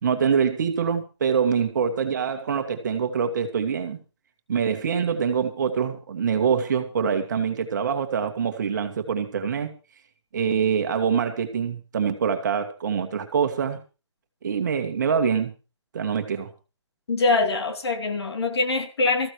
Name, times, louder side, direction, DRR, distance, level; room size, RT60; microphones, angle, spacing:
voice 1, 0.0-4.0 4.5-9.7 10.3-13.8 14.4-15.5 15.9-16.5, right 7 dB, 40° right, 1.9 m, -24 dB
voice 2, 17.1-19.3, left 3 dB, 65° left, 3.0 m, -23 dB
20.0 x 14.5 x 3.2 m
hypercardioid pair, 165°, 15 cm